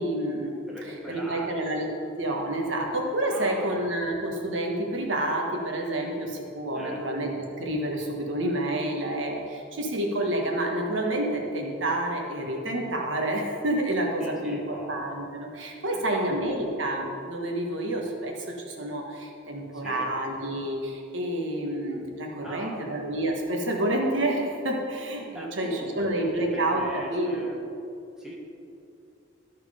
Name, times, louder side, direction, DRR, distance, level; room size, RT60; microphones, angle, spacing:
voice 1, 0.0-0.5 1.1-1.9 2.2-27.3, right 1 dB, 85° right, 0 dB, 1.4 m, -29 dB
voice 2, 0.7-1.9 3.3-3.8 6.7-7.0 14.2-14.9 15.9-16.7 19.7-20.1 22.4-22.9 25.3-27.6 28.2-28.4, equal, 5° right, -4 dB, 1.3 m, -40 dB
13.5 x 4.6 x 5.0 m, 2.6 s
head